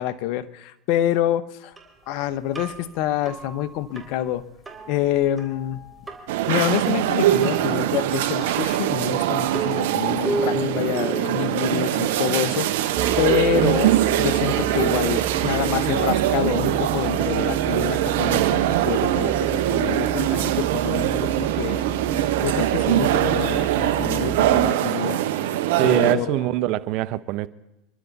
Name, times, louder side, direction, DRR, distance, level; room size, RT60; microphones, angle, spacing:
voice 1, 0.0-1.7 2.1-4.5 4.9-5.8 6.5-21.8 22.4-25.2 25.8-26.5, left 12 dB, 60° left, 1.1 m, -27 dB
sound 1, 1.8-17.1, right 3 dB, 15° right, 3.8 m, -36 dB
sound 2, 6.3-26.2, right 13 dB, 70° right, 1.2 m, -22 dB
sound 3, 13.0-24.7, right 8 dB, 30° right, 0.6 m, -30 dB
voice 2, 25.8-27.5, right 16 dB, 55° right, 0.9 m, -23 dB
28.5 x 12.0 x 4.1 m
hypercardioid pair, 95°, 0 cm